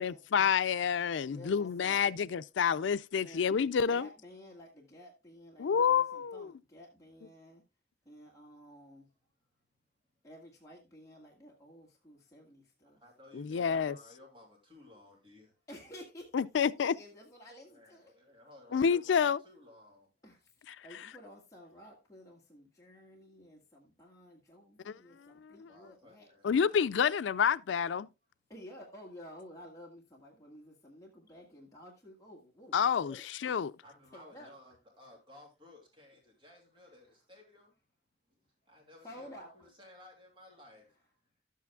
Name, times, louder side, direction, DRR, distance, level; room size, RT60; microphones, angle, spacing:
voice 1, 0.0-4.1 5.6-6.5 13.3-13.9 16.3-16.9 18.7-19.4 24.9-25.0 25.4-25.5 26.4-28.1 32.7-33.2 33.4-33.7, left 7 dB, 90° left, 0.4 m, -28 dB
voice 2, 1.3-2.1 3.2-7.6 8.0-9.1 10.2-13.0 15.7-18.1 20.2-26.3 28.5-32.8 33.0-33.2 34.1-34.5 36.8-37.0 39.0-39.5, equal, 20° left, 1.8 m, -53 dB
voice 3, 12.8-15.5 17.7-20.1 25.7-26.5 33.8-37.8 38.3-41.0, left 1 dB, 30° right, 2.8 m, -57 dB
12.0 x 8.4 x 2.3 m
head